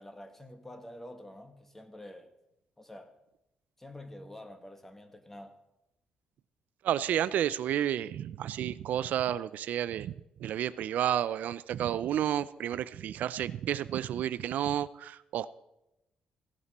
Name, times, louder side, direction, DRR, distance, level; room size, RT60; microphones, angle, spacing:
voice 1, 0.0-2.3 2.8-3.1 3.8-5.6, left 1 dB, 10° left, 1.4 m, -47 dB
voice 2, 6.8-10.1 10.4-15.5, right 10 dB, 75° right, 0.4 m, -31 dB
16.0 x 11.0 x 4.2 m
cardioid pair, 100°, 3 cm